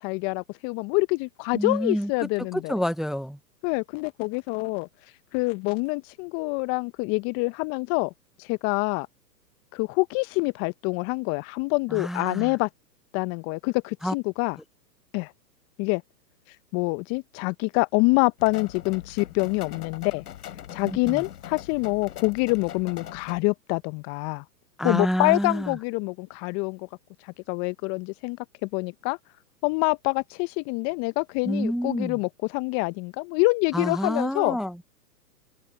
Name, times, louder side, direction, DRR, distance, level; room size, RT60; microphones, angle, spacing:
voice 1, 0.0-2.7 3.6-4.9 5.3-8.1 8.4-9.1 9.7-12.7 13.1-14.6 15.1-15.3 15.8-16.0 16.7-20.2 20.7-24.4 24.8-26.9 27.5-29.2 29.6-34.6, left 28 dB, 30° left, 0.9 m, -26 dB
voice 2, 1.5-2.1 2.5-3.4 11.9-12.6 14.0-14.1 20.8-21.2 24.8-25.8 31.4-32.2 33.7-34.8, equal, ahead, 0.8 m, -28 dB
sound 1, 18.4-23.4, left 10 dB, 65° left, 6.8 m, -41 dB
hypercardioid pair, 115°, 49 cm